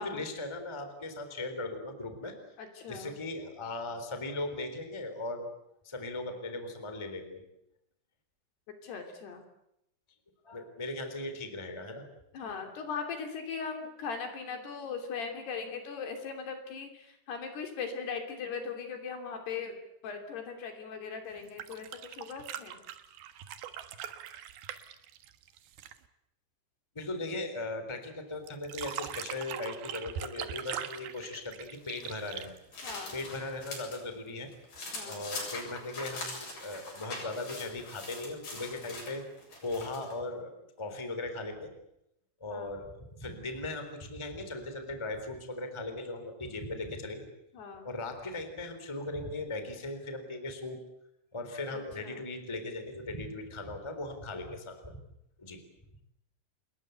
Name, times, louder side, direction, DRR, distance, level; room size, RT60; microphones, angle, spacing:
voice 1, 0.0-2.3 2.9-5.5 5.8-7.4 10.4-12.0 26.9-32.5 33.1-34.5 35.0-39.2 39.6-41.7 42.4-47.3 47.8-50.8 51.3-55.0 55.4-55.6, left 2 dB, 5° left, 7 dB, 3.0 m, -38 dB
voice 2, 2.6-3.1 8.8-9.4 12.3-19.8 20.0-22.8 32.8-33.2 34.9-35.3 42.5-42.7 47.5-47.9 51.7-52.2, left 5 dB, 60° left, 5 dB, 4.8 m, -39 dB
sound 1, 21.4-26.1 28.5-33.3 34.8-34.9, right 10 dB, 65° right, 2.8 m, -41 dB
sound 2, 31.8-34.0 34.4-40.1, left 2 dB, 45° left, 9.0 m, -43 dB
28.5 x 21.5 x 8.1 m, 0.81 s
omnidirectional pair, 5.4 m